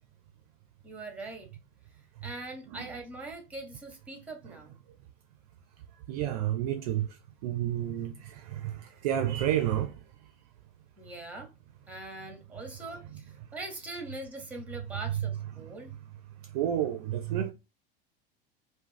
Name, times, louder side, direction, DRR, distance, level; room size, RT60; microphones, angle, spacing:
voice 1, 0.8-1.5 2.2-4.8 11.0-11.5 11.9-13.2 13.5-15.9, right 2 dB, 5° right, 0.7 m, -42 dB
voice 2, 6.1-10.0 15.5-15.8 16.4-17.5, right 11 dB, 40° right, 0.4 m, -31 dB
2.3 x 2.1 x 3.6 m
figure-of-eight pair, 85°, 29 cm